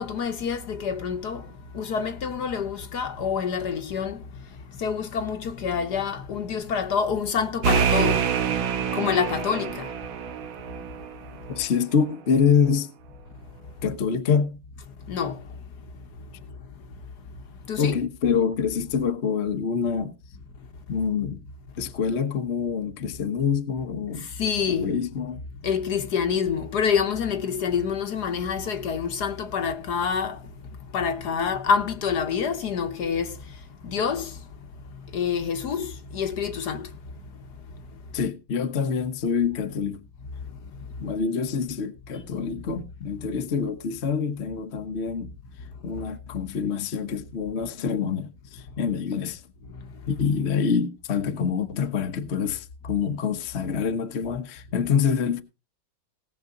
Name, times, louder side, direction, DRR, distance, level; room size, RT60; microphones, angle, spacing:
voice 1, 0.0-1.5 1.7-4.2 4.8-8.2 8.9-9.9 15.1-15.4 17.7-17.9 24.4-25.0 25.6-30.4 30.9-33.4 33.8-34.3 35.1-36.9, left 6 dB, 60° left, 1.6 m, -27 dB
sound 1, 7.6-11.1, right 7 dB, 80° right, 1.8 m, -26 dB
voice 2, 11.5-12.9 13.8-14.6 17.8-20.1 20.9-21.4 21.8-24.3 24.8-25.4 38.1-40.0 41.0-45.3 45.8-49.4 50.1-55.4, left 6 dB, 40° left, 1.1 m, -26 dB
18.5 x 6.9 x 3.8 m
omnidirectional pair, 2.2 m